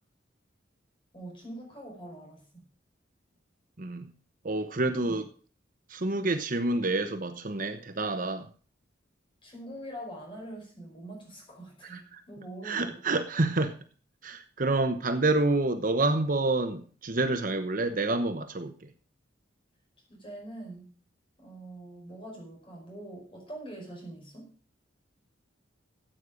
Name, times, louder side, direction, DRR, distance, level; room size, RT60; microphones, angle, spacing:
voice 1, 1.1-2.6 5.0-5.2 9.4-13.0 20.1-20.9 21.4-24.5, right 1 dB, 25° left, 5.2 m, -44 dB
voice 2, 4.4-5.2 5.9-8.5 11.9-12.0 12.6-13.8 14.2-18.9, right 2 dB, 45° right, 1.0 m, -28 dB
14.5 x 8.4 x 5.1 m
head